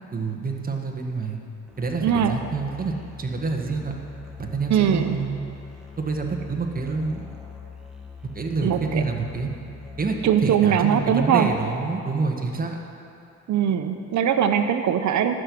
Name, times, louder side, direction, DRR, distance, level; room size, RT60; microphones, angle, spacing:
voice 1, 0.1-1.4 1.8-3.9 4.4-5.4 6.0-7.3 8.3-9.5 10.0-12.8, right 4 dB, 30° right, 2 dB, 1.5 m, -27 dB
Musical instrument, 1.7-11.8, left 5 dB, ahead, 1.5 m, -43 dB
voice 2, 2.0-2.4 4.7-5.2 8.6-9.0 10.2-11.5 13.5-15.3, right 8 dB, 70° right, 8 dB, 0.9 m, -21 dB
12.5 x 6.4 x 8.4 m, 2.7 s
cardioid pair, 90°, 30 cm